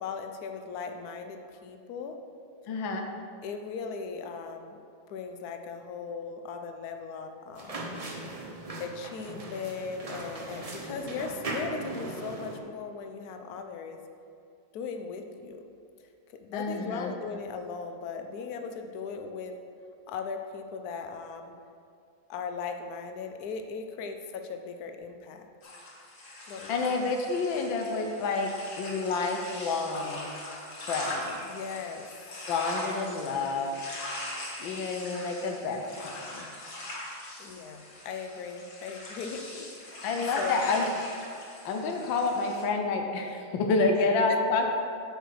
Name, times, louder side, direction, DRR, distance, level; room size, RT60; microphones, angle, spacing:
voice 1, 0.0-2.2 3.4-4.8 5.1-8.0 8.8-14.0 14.7-15.6 16.4-19.5 20.1-21.5 22.3-25.4 26.5-27.2 31.4-32.1 37.4-40.1 40.4-41.0 44.3-44.4, left 5 dB, 65° left, 6 dB, 1.0 m, -38 dB
voice 2, 2.7-3.1 16.5-17.1 26.7-28.5 28.8-30.3 30.9-31.4 32.5-33.8 34.6-36.5 40.0-40.9 41.6-44.7, left 3 dB, 90° left, 3 dB, 1.5 m, -29 dB
sound 1, 7.6-12.6, right 2 dB, 70° right, 0.3 m, -38 dB
sound 2, 25.6-42.6, left 1 dB, 45° left, 1.6 m, -41 dB
7.9 x 4.8 x 6.3 m, 2.4 s
omnidirectional pair, 2.0 m